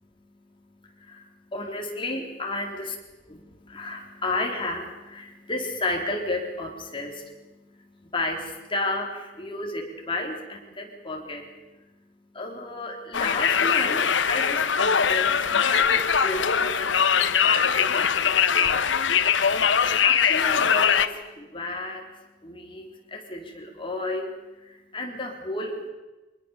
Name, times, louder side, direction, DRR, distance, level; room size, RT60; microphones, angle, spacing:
voice 1, 0.0-2.9 3.3-25.9, left 2 dB, 30° left, 2 dB, 3.7 m, -33 dB
Conversation, 13.1-21.1, left 7 dB, 75° left, 1.0 m, -21 dB
25.0 x 20.5 x 7.2 m, 1.1 s
head